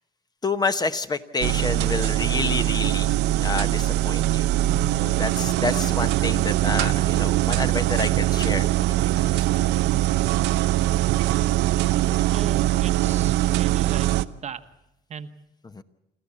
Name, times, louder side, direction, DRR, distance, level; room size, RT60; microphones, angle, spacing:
voice 1, 0.4-4.5 5.0-9.6 15.6-15.8, left 3 dB, 25° left, 10 dB, 0.9 m, -29 dB
sound 1, 1.4-14.3, right 15 dB, 85° right, 0.7 m, -22 dB
voice 2, 12.3-14.1 14.4-14.6 15.1-15.4, right 7 dB, 40° right, 10 dB, 1.1 m, -37 dB
27.0 x 13.5 x 8.5 m, 0.92 s
cardioid pair, 110°, 17 cm